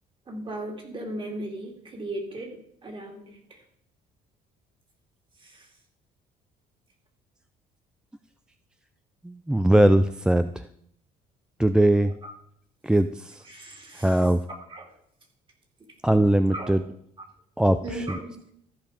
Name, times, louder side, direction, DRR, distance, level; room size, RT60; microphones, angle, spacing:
voice 1, 0.3-3.4 5.4-5.7 12.2-12.3 13.5-14.2 14.7-14.9 16.5-16.7 17.8-18.3, right 1 dB, 30° right, 2 dB, 2.6 m, -36 dB
voice 2, 9.2-10.5 11.6-12.1 12.8-13.4 14.0-14.4 16.0-16.8 17.6-18.2, right 1 dB, 5° right, 9 dB, 0.4 m, -20 dB
14.0 x 5.1 x 5.2 m, 0.68 s
cardioid pair, 110°, 17 cm